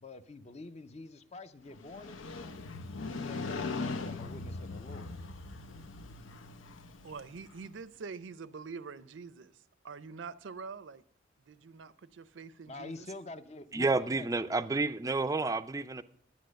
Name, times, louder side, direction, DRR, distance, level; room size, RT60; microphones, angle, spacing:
voice 1, 0.0-2.5 3.2-5.1 12.7-14.3, left 2 dB, 35° left, 0.6 m, -47 dB
Motorcycle, 1.7-7.7, left 3 dB, 80° left, 0.8 m, -40 dB
voice 2, 7.0-9.6 9.8-11.0 11.5-13.1, right 5 dB, 70° right, 0.5 m, -45 dB
voice 3, 13.7-16.0, right 3 dB, 15° right, 0.4 m, -30 dB
10.5 x 8.3 x 6.3 m
head